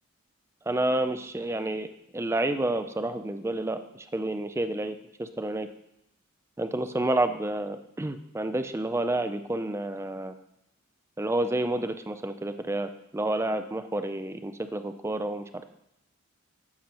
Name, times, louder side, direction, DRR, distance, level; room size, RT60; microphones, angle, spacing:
voice 1, 0.7-1.9 2.1-5.7 6.6-10.3 11.2-15.4, right 1 dB, 15° right, 9 dB, 0.4 m, -29 dB
14.0 x 6.4 x 2.9 m, 0.82 s
head